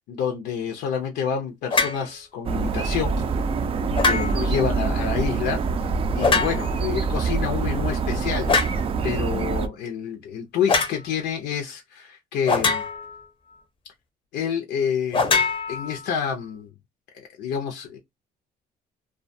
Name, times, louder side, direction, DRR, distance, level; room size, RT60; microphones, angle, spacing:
voice 1, 0.1-3.2 4.0-5.6 6.1-12.8 14.3-15.2 15.7-16.7 17.1-18.0, left 7 dB, 75° left, 0.6 m, -28 dB
sound 1, 1.7-2.0 3.9-4.6 6.2-6.8 8.5-8.8 10.7-11.0 12.5-13.2 15.1-16.3, left 4 dB, 30° left, 0.6 m, -23 dB
sound 2, 2.4-9.7, right 4 dB, 35° right, 0.3 m, -25 dB
2.3 x 2.2 x 2.6 m
cardioid pair, 110°, 17 cm